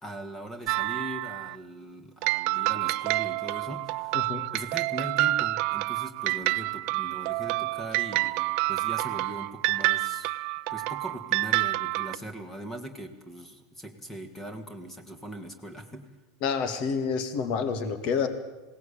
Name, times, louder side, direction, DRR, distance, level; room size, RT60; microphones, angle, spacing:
voice 1, 0.0-10.3 10.7-16.1, right 1 dB, 10° left, 7 dB, 2.1 m, -40 dB
sound 1, 0.7-1.6 2.2-12.2, right 20 dB, 55° right, 0.6 m, -28 dB
voice 2, 4.1-4.5 16.4-18.3, left 6 dB, 50° left, 10 dB, 2.3 m, -28 dB
20.5 x 17.5 x 8.7 m, 1.1 s
supercardioid pair, 125°, 2 cm